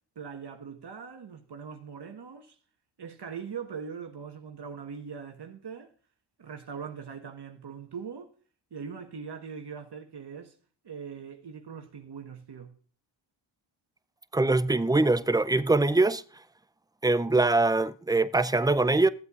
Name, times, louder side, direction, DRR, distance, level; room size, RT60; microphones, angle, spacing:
voice 1, 0.1-2.5 3.0-5.9 6.4-8.3 8.7-10.5 10.8-12.7, right 6 dB, 55° right, 1.4 m, -41 dB
voice 2, 14.3-16.2 17.0-19.1, right 2 dB, 10° right, 0.5 m, -23 dB
14.5 x 8.0 x 2.5 m
supercardioid pair, 50°, 50 cm